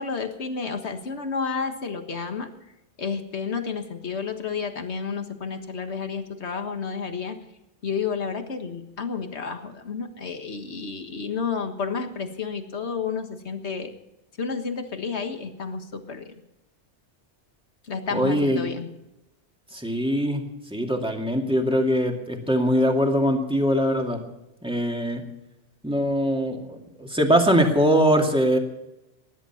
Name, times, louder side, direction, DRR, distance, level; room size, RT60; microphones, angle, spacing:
voice 1, 0.0-2.5 3.0-7.4 7.8-13.9 14.4-16.3 17.8-18.9, left 5 dB, 70° left, 7 dB, 1.8 m, -31 dB
voice 2, 18.1-18.6 19.7-20.4 20.7-24.2 24.6-25.2 25.8-28.6, equal, 5° right, 2 dB, 2.3 m, -22 dB
19.5 x 11.5 x 5.9 m, 0.93 s
omnidirectional pair, 1.2 m